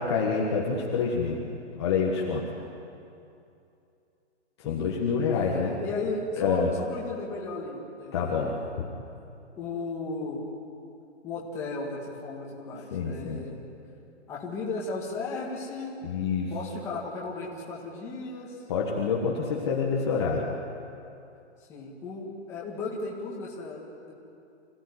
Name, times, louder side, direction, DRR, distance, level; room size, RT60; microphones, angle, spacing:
voice 1, 0.0-1.4 1.8-2.4 4.6-5.7 6.4-6.7 8.1-8.9 12.9-13.4 16.0-16.5 18.7-20.5, left 5 dB, 25° left, -3 dB, 1.5 m, -27 dB
voice 2, 4.6-4.9 5.3-8.5 9.6-10.5 11.2-13.6 14.3-16.0 16.5-18.5 21.7-24.1, left 3 dB, 5° left, -5 dB, 1.9 m, -35 dB
26.5 x 16.5 x 9.8 m, 2.7 s
hypercardioid pair, 180°, 35 cm